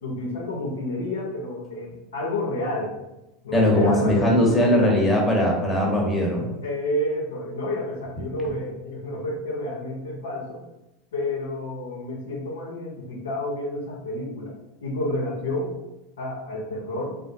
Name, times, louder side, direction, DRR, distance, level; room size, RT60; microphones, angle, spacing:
voice 1, 0.0-3.0 3.4-4.6 6.6-10.6 11.1-14.6 14.8-15.8 16.2-17.2, left 1 dB, 70° left, -3 dB, 0.7 m, -30 dB
voice 2, 3.5-6.5, left 1 dB, 10° left, -3 dB, 0.9 m, -20 dB
3.6 x 2.5 x 2.6 m, 0.94 s
figure-of-eight pair, 80°, 0 cm